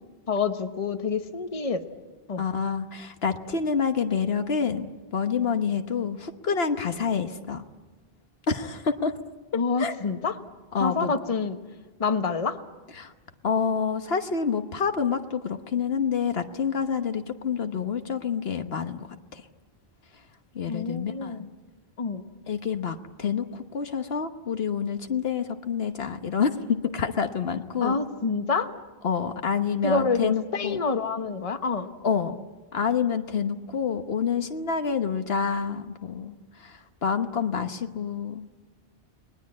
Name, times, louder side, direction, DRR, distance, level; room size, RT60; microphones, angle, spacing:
voice 1, 0.3-1.8 2.3-2.4 9.5-10.4 10.8-11.6 12.0-12.6 20.7-21.5 22.0-22.3 27.8-28.8 29.8-32.0, left 4 dB, 35° left, 8 dB, 1.1 m, -27 dB
voice 2, 2.4-7.6 8.5-9.1 9.8-9.9 10.7-11.1 13.0-13.1 13.4-19.4 20.5-21.5 22.5-28.0 29.0-30.8 32.0-32.4 32.7-38.4, left 6 dB, 75° left, 7 dB, 1.4 m, -28 dB
30.0 x 20.5 x 8.6 m, 1.3 s
omnidirectional pair, 1.0 m